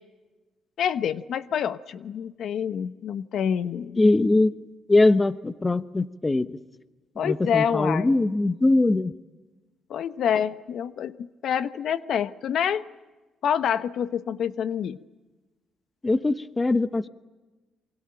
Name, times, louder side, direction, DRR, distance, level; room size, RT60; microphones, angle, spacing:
voice 1, 0.8-4.0 7.2-8.2 9.9-12.8 13.4-15.0, left 8 dB, 70° left, 14 dB, 1.0 m, -27 dB
voice 2, 4.0-4.5 4.9-6.6 7.2-9.1 16.0-17.1, left 2 dB, 20° left, 14 dB, 1.0 m, -21 dB
28.0 x 24.0 x 8.9 m, 1.2 s
cardioid pair, 90°, 0 cm